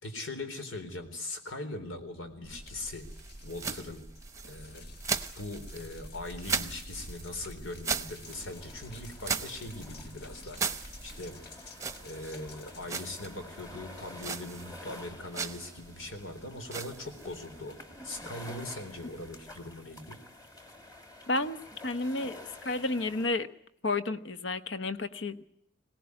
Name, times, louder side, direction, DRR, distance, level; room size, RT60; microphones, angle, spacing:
voice 1, 0.0-3.1 3.4-4.0 4.4-4.9 5.4-10.6 11.0-11.4 12.0-17.8 18.0-20.2, left 2 dB, 90° left, 7 dB, 3.8 m, -41 dB
sound 1, 2.4-19.7, right 5 dB, 15° right, 0.8 m, -39 dB
sound 2, 2.5-13.3, left 3 dB, 50° left, 1.6 m, -52 dB
sound 3, 8.2-23.3, left 1 dB, 20° left, 2.5 m, -50 dB
voice 2, 21.3-21.6 21.8-22.4 22.6-23.5 23.8-25.4, left 2 dB, 70° left, 11 dB, 1.1 m, -31 dB
21.5 x 18.0 x 9.7 m, 0.74 s
head